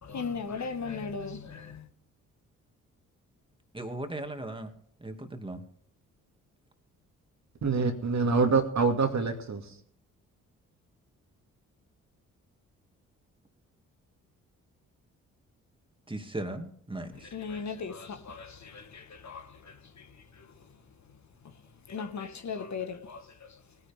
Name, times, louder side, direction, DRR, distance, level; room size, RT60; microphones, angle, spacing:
voice 1, 0.0-1.9 17.1-23.6, left 5 dB, 45° left, 1.6 m, -39 dB
voice 2, 3.7-4.7 5.0-5.6 16.1-17.1, right 1 dB, 15° right, 2.5 m, -37 dB
voice 3, 7.6-9.6, right 4 dB, 45° right, 2.4 m, -25 dB
20.5 x 10.0 x 3.7 m
hypercardioid pair, 40°, 39 cm